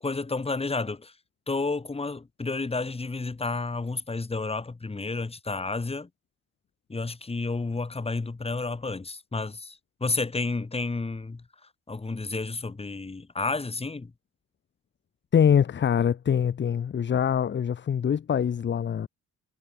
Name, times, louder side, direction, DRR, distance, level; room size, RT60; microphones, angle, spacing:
voice 1, 0.0-1.1 1.5-6.1 6.9-11.4 11.9-14.1, left 3 dB, 20° left, 2.2 m, -31 dB
voice 2, 15.3-19.1, left 8 dB, 40° left, 0.9 m, -24 dB
cardioid pair, 90°, 30 cm